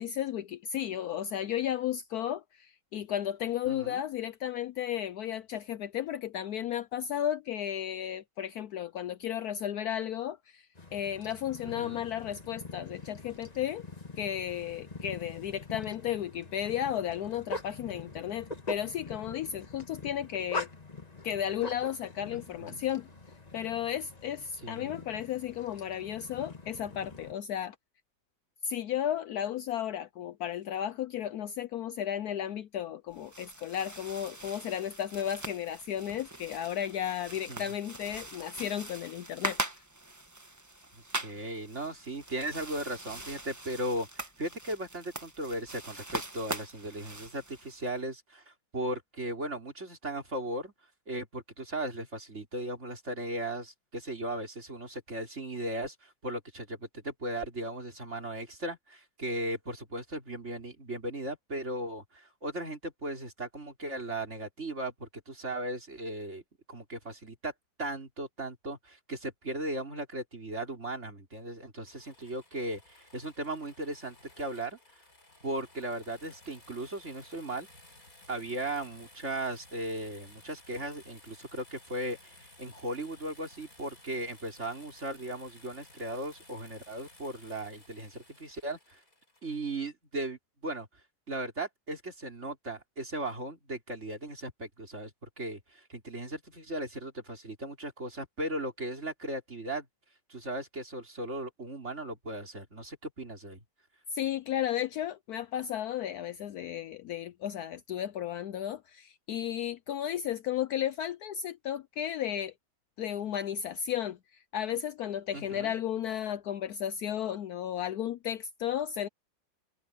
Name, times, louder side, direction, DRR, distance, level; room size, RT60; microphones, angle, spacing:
voice 1, 0.0-10.7 10.9-13.8 14.2-20.7 21.2-23.1 23.5-27.8 28.6-39.6 104.1-112.5 113.0-114.2 114.5-119.1, left 10 dB, 70° left, 1.0 m, -34 dB
voice 2, 3.6-4.0 11.6-12.0 22.6-22.8 24.6-25.0 37.5-37.6 40.9-50.7 51.1-66.4 66.7-67.5 67.8-74.8 75.4-77.7 78.3-89.0 89.4-90.9 91.3-99.9 100.3-103.6 115.3-115.7, right 1 dB, 40° right, 4.3 m, -37 dB
sound 1, 10.8-27.3, left 2 dB, 20° left, 1.8 m, -44 dB
sound 2, 33.1-47.9, right 1 dB, 10° right, 1.2 m, -42 dB
sound 3, 71.9-89.6, left 1 dB, 50° left, 8.4 m, -57 dB
omnidirectional pair, 1.9 m